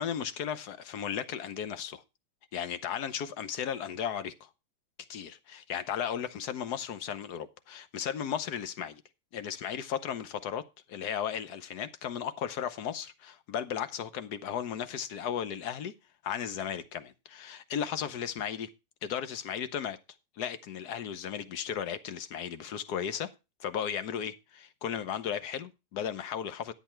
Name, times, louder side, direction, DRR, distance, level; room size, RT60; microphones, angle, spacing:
voice 1, 0.0-2.0 2.5-4.5 5.1-9.0 9.3-10.6 10.9-15.9 16.2-18.7 19.0-20.0 20.4-23.3 23.6-26.7, left 8 dB, 75° left, 1.4 m, -35 dB
10.5 x 8.1 x 4.4 m
omnidirectional pair, 1.8 m